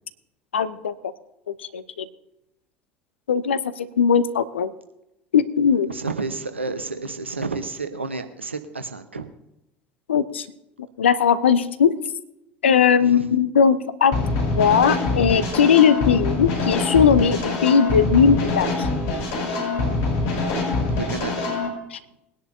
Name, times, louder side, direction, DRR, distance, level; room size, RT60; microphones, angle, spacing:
voice 1, 0.5-0.9 1.6-2.1 3.3-4.7 5.3-5.9 10.1-10.4 11.0-11.9 12.6-14.2 14.5-18.9 21.9-22.0, left 7 dB, 75° left, 14 dB, 0.7 m, -19 dB
voice 2, 5.9-9.3 13.0-13.3 21.1-21.5, right 3 dB, 85° right, 8 dB, 1.0 m, -31 dB
sound 1, 14.1-21.7, left 3 dB, 55° left, 5.9 m, -24 dB
21.0 x 10.5 x 2.7 m, 0.87 s
figure-of-eight pair, 65°, 6 cm